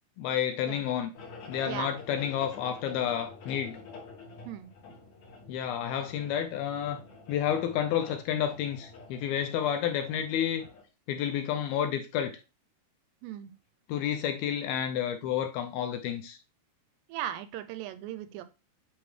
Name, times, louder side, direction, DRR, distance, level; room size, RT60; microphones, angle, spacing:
voice 1, 0.2-1.1 1.5-3.8 5.5-7.0 7.3-10.6 11.1-12.4 13.9-16.4, left 9 dB, 80° left, 2.3 m, -30 dB
sound 1, 1.1-10.8, left 4 dB, 55° left, 2.2 m, -48 dB
voice 2, 1.7-2.0 4.5-4.7 13.2-13.5 17.1-18.4, right 12 dB, 85° right, 2.7 m, -37 dB
8.7 x 3.8 x 3.2 m
omnidirectional pair, 4.8 m